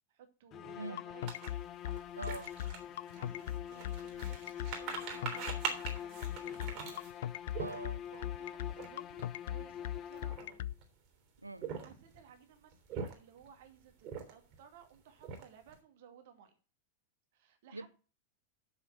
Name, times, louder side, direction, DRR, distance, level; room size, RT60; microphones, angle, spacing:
voice 1, 0.1-1.3 3.1-7.1 8.1-10.6 11.8-16.5 17.3-17.9, right 8 dB, 55° right, 2.3 m, -58 dB
sound 1, 0.5-10.7, left 9 dB, 30° left, 0.8 m, -46 dB
sound 2, 1.0-10.7, left 12 dB, 55° left, 0.4 m, -38 dB
sound 3, 1.3-8.2 8.7-8.9 9.1-9.4 10.0-10.8 11.5-12.2 12.7-13.5 14.0-14.6 14.9-15.7, right 6 dB, 40° right, 3.5 m, -43 dB
voice 2, 2.2-2.6 7.6-8.0 11.4-11.7 17.7-17.9, right 2 dB, 85° right, 0.5 m, -43 dB
7.4 x 6.6 x 7.7 m
figure-of-eight pair, 90°, 0 cm